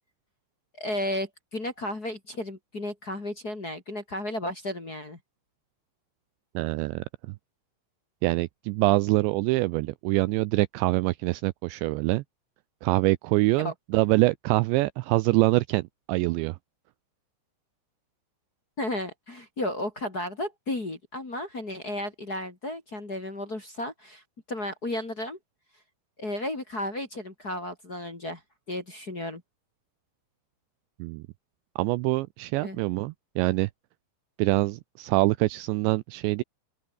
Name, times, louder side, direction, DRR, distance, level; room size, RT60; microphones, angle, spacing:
voice 1, 0.8-5.2 13.6-13.7 18.8-24.2 24.5-25.4 26.2-28.4 28.7-29.4 32.6-32.8, left 1 dB, 25° left, 2.5 m, -33 dB
voice 2, 6.5-7.4 8.2-12.2 12.8-16.6 31.0-31.2 31.8-33.7 34.4-36.4, right 21 dB, 85° right, 2.6 m, -25 dB
open air
omnidirectional pair, 5.6 m